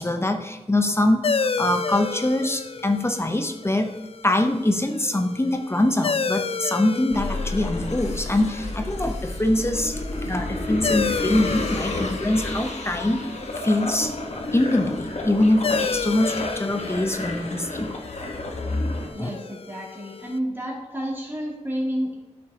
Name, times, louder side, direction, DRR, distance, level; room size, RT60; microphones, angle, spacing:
voice 1, 0.0-3.9 4.2-13.2 13.6-14.1 14.5-17.9 19.2-19.3, left 1 dB, 20° left, 6 dB, 0.8 m, -23 dB
sound 1, 1.2-20.4, left 5 dB, 50° left, 0.4 m, -32 dB
sound 2, 7.1-19.1, left 2 dB, 70° left, 1.3 m, -31 dB
voice 2, 19.1-22.1, equal, 15° right, -4 dB, 2.8 m, -30 dB
12.0 x 6.1 x 2.9 m, 1.1 s
wide cardioid pair, 90°, 12 cm